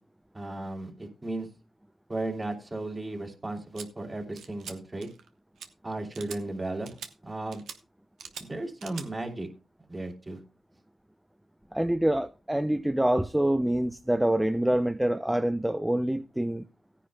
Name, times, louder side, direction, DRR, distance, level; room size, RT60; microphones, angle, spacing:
voice 1, 0.3-1.5 2.1-5.1 5.8-6.9 7.2-7.6 8.4-9.5 9.9-10.4, right 2 dB, 30° right, 2.8 m, -35 dB
sound 1, 3.8-3.9 4.4-4.8 5.0-5.3 5.6-5.7 6.1-6.4 6.9-7.1 7.5-7.8 8.2-8.5 8.8-9.1, right 7 dB, 90° right, 0.9 m, -42 dB
voice 2, 11.7-16.7, right 1 dB, 10° right, 0.5 m, -26 dB
17.0 x 9.9 x 2.2 m
cardioid pair, 60°, 0 cm